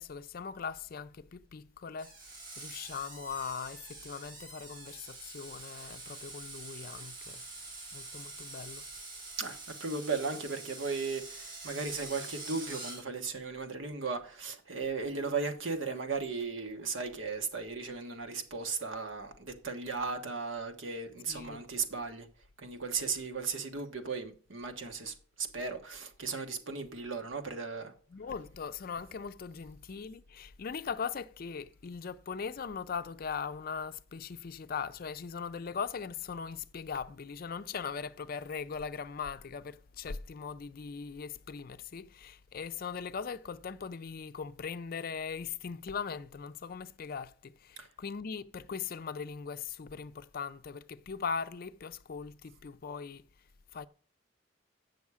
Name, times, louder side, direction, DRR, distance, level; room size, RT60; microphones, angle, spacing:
voice 1, 0.0-7.4 7.9-8.8 21.3-21.6 28.1-53.2 53.7-53.8, left 6 dB, 50° left, 0.4 m, -40 dB
Screech, 2.0-13.0, right 3 dB, 45° right, 3.1 m, -46 dB
voice 2, 9.4-22.3 22.6-27.9 47.8-47.9, right 4 dB, 85° right, 1.3 m, -36 dB
8.4 x 6.3 x 4.8 m
head